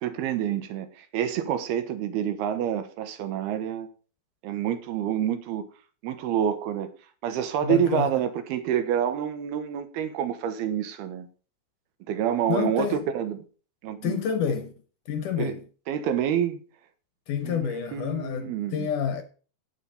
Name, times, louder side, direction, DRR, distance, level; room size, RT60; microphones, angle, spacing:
voice 1, 0.0-3.9 4.4-5.7 6.0-6.9 7.2-11.3 12.1-13.4 13.8-14.2 15.4-15.5 15.9-16.6 17.4-18.9, right 9 dB, 85° right, 3.1 m, -28 dB
voice 2, 7.6-8.1 12.5-13.0 14.0-14.7 15.1-15.6 17.3-19.2, left 8 dB, 70° left, 2.1 m, -28 dB
10.0 x 7.1 x 5.2 m
omnidirectional pair, 4.4 m